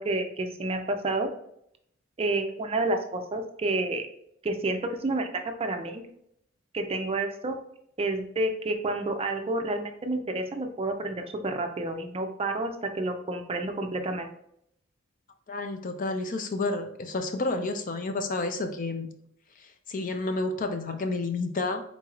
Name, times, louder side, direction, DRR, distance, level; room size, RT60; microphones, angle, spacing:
voice 1, 0.0-1.3 2.2-4.0 4.4-6.1 6.7-7.6 8.0-14.3, right 2 dB, 30° right, 5 dB, 0.4 m, -29 dB
voice 2, 15.5-19.1 19.6-21.8, left 3 dB, 40° left, 7 dB, 0.5 m, -30 dB
4.5 x 3.9 x 2.4 m, 0.72 s
head